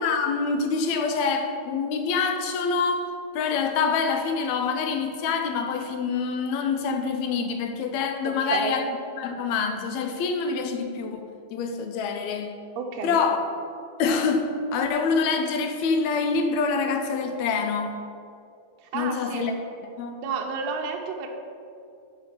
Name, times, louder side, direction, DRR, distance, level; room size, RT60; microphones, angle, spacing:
voice 1, 0.0-8.9 9.2-12.6 13.0-13.4 14.0-18.0 18.9-19.6 20.0-20.2, left 5 dB, 80° left, 6 dB, 1.8 m, -26 dB
voice 2, 8.3-8.7 12.8-13.2 18.8-19.5 20.2-21.3, right 5 dB, 70° right, 2 dB, 1.7 m, -31 dB
7.0 x 5.4 x 5.9 m, 2.4 s
omnidirectional pair, 3.5 m